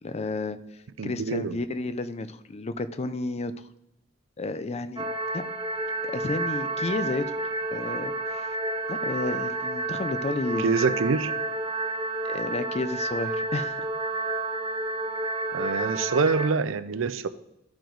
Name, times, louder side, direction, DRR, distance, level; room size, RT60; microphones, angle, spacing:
voice 1, 0.0-3.7 4.4-5.1 5.3-5.4 6.0-7.3 7.7-8.6 8.9-10.8 12.2-13.9, left 2 dB, 30° left, 12 dB, 0.4 m, -32 dB
voice 2, 1.0-1.6 10.6-11.3 15.5-17.3, right 5 dB, 75° right, 13 dB, 0.5 m, -25 dB
sound 1, 5.0-16.5, right 2 dB, 25° right, 0.8 m, -30 dB
13.5 x 4.9 x 3.8 m, 0.83 s
head